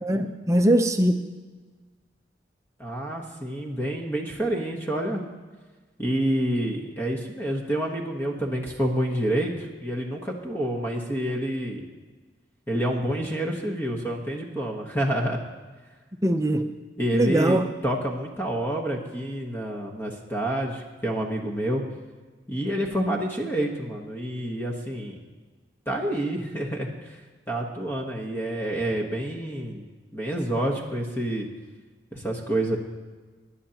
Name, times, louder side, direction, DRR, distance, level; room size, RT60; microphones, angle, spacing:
voice 1, 0.0-1.2 16.2-16.6 17.1-17.7, right 1 dB, 15° right, 6 dB, 0.6 m, -21 dB
voice 2, 2.8-5.2 6.0-11.8 12.7-15.4 17.0-21.8 22.5-25.2 25.9-27.2 27.5-29.8 30.1-31.5 32.1-32.8, right 1 dB, 10° left, 0 dB, 1.1 m, -28 dB
19.5 x 10.0 x 2.9 m, 1.4 s
head